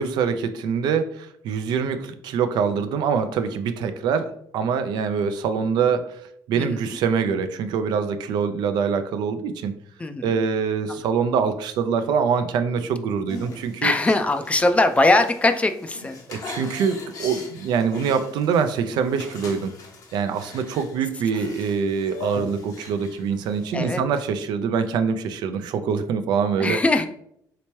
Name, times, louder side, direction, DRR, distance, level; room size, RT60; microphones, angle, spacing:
voice 1, 0.0-6.2 6.5-9.7 10.2-13.9 16.3-19.7 20.1-26.8, right 6 dB, 80° right, 9 dB, 0.4 m, -24 dB
voice 2, 6.5-7.0 10.0-10.4 13.8-16.7 23.7-24.0 26.6-27.1, left 2 dB, 15° left, 8 dB, 0.4 m, -21 dB
sound 1, 13.3-23.7, left 3 dB, 55° left, 0.8 m, -40 dB
3.3 x 2.9 x 3.0 m, 0.68 s
cardioid pair, 95°, 7 cm